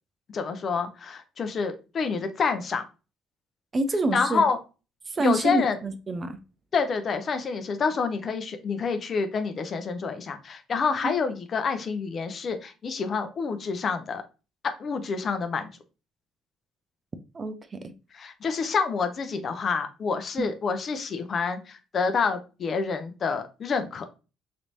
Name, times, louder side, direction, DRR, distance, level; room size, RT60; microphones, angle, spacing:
voice 1, 0.3-2.8 4.1-4.6 5.2-5.8 6.7-14.2 14.6-15.7 18.1-24.1, left 5 dB, 50° left, 0.6 m, -28 dB
voice 2, 3.7-4.4 5.1-6.4 11.0-11.1 17.3-17.8 20.4-20.5, right 2 dB, 35° right, 0.5 m, -27 dB
3.2 x 3.0 x 2.6 m
hypercardioid pair, 60°, 0 cm